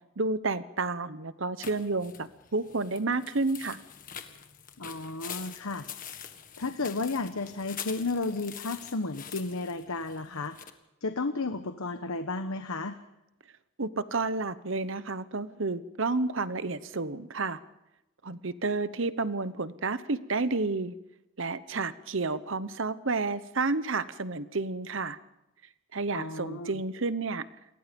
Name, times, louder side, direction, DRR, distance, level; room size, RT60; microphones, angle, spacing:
voice 1, 0.2-3.8 13.8-17.6 18.2-20.9 21.4-25.2 25.9-27.5, right 3 dB, 65° right, 14 dB, 1.0 m, -30 dB
sound 1, 1.6-10.7, left 9 dB, 40° left, 1.7 m, -45 dB
voice 2, 4.8-5.8 6.6-10.5 11.0-12.9 26.1-26.8, left 3 dB, 85° left, 8 dB, 1.1 m, -33 dB
29.0 x 22.5 x 5.3 m, 0.90 s
head